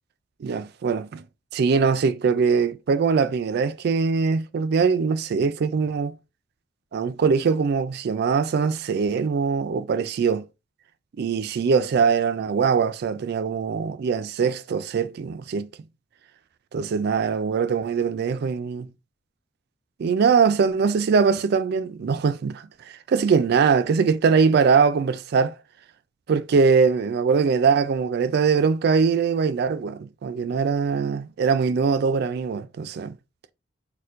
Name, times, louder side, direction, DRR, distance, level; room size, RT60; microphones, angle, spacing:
voice 1, 0.4-1.2 1.5-6.2 6.9-10.4 11.2-15.7 16.7-18.9 20.0-22.6 23.1-25.6 26.3-33.2, right 5 dB, 60° right, 0.3 m, -22 dB
4.2 x 2.2 x 2.5 m
head